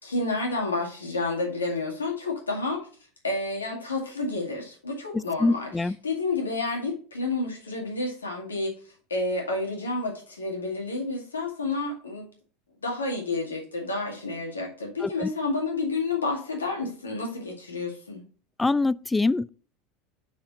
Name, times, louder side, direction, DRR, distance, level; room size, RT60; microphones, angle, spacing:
voice 1, 0.0-2.8 3.2-5.7 6.0-8.7 9.1-12.3 12.8-18.2, left 3 dB, 85° left, 2.0 m, -30 dB
voice 2, 5.1-6.0 15.0-15.3 18.6-19.5, left 3 dB, 15° left, 0.3 m, -25 dB
5.9 x 4.9 x 4.0 m
figure-of-eight pair, 75°, 0 cm